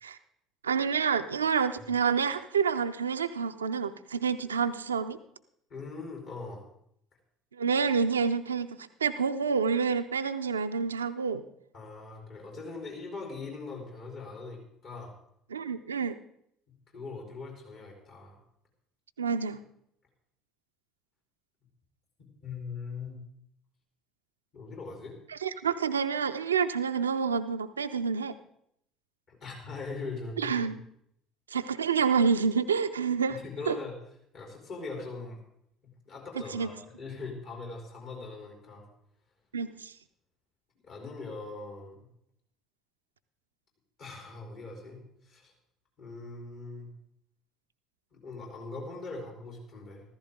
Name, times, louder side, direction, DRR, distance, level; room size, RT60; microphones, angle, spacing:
voice 1, 0.6-5.2 7.5-8.7 9.0-11.4 15.5-16.2 19.2-19.6 25.3-28.3 30.4-30.8 31.5-33.4 33.7-33.8 36.5-36.7 39.5-39.9, right 6 dB, 85° right, 10 dB, 0.5 m, -28 dB
voice 2, 5.7-6.7 11.7-15.1 16.9-18.4 22.4-23.2 24.5-25.2 29.3-30.5 33.3-33.9 34.3-35.4 36.0-38.8 40.8-41.9 44.0-45.5 46.0-46.9 48.1-50.0, left 3 dB, 55° left, -1 dB, 4.4 m, -41 dB
14.5 x 14.0 x 3.8 m, 0.72 s
figure-of-eight pair, 55°, 0 cm